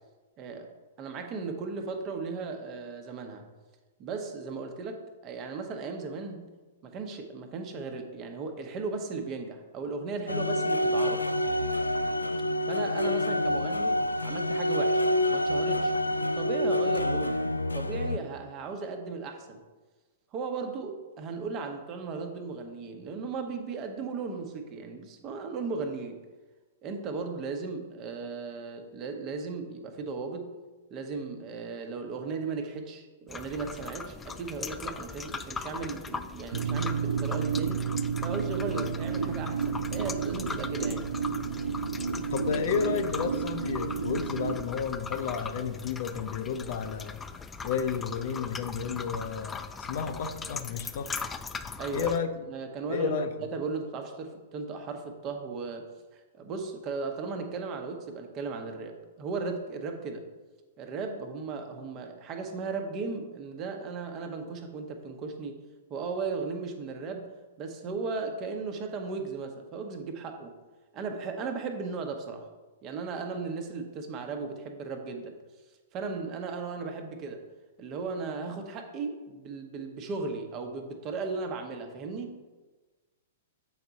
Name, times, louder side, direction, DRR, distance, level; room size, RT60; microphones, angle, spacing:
voice 1, 0.4-0.7 1.0-3.5 4.0-6.5 6.8-11.3 12.7-15.9 16.3-17.4 17.7-19.6 20.3-26.2 26.8-30.6 30.9-37.9 38.2-41.0 51.8-52.1 52.5-55.9 56.1-60.3 60.8-65.6 65.9-70.5 70.9-72.5 72.8-75.4 75.9-77.4 77.8-82.4, right 4 dB, 35° right, 5 dB, 1.0 m, -36 dB
sound 1, 10.3-18.2, left 1 dB, 85° left, 0.3 m, -27 dB
sound 2, 33.3-52.2, left 5 dB, 15° left, 0.4 m, -40 dB
sound 3, 36.5-44.5, right 6 dB, 75° right, 0.5 m, -31 dB
voice 2, 42.2-47.2 47.6-51.1 51.9-52.3 52.9-53.3, left 6 dB, 55° left, 8 dB, 0.7 m, -32 dB
7.7 x 4.7 x 4.0 m, 1.2 s
figure-of-eight pair, 105°, 0 cm